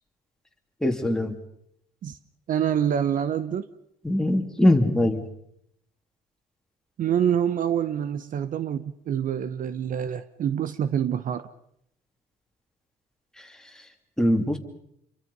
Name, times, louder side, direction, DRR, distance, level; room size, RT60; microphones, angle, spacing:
voice 1, 0.8-1.4 4.0-5.2 14.2-14.6, left 1 dB, 5° left, 2.8 m, -21 dB
voice 2, 2.5-3.6 7.0-11.5, right 9 dB, 50° right, 0.9 m, -26 dB
27.5 x 23.5 x 5.4 m
cardioid pair, 110°, 17 cm